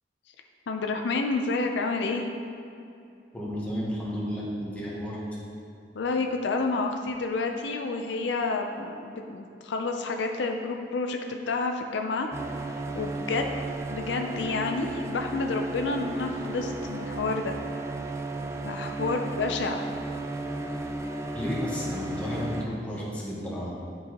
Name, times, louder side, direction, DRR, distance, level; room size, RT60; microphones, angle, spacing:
voice 1, 0.7-2.3 5.9-12.3 12.7-13.5 13.9-17.6 18.6-19.9, left 3 dB, 75° left, 4 dB, 0.4 m, -29 dB
voice 2, 3.3-5.2 21.3-23.7, equal, 10° left, -7 dB, 1.1 m, -32 dB
sound 1, 12.3-22.6, right 2 dB, 15° right, 0.3 m, -34 dB
10.5 x 4.7 x 2.9 m, 2.6 s
head